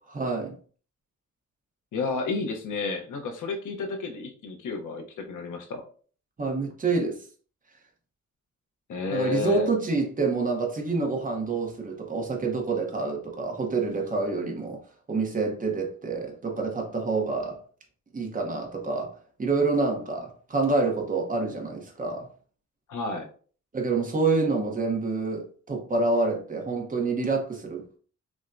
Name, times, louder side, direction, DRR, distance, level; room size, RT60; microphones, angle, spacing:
voice 1, 0.1-0.6 6.4-7.2 9.1-14.8 15.1-17.6 18.1-19.1 19.4-22.3 23.7-28.0, right 3 dB, 25° right, 0.9 m, -27 dB
voice 2, 1.9-5.8 8.9-9.7 22.9-23.3, left 3 dB, 80° left, 0.9 m, -31 dB
6.1 x 2.2 x 2.6 m
wide cardioid pair, 165°, 30 cm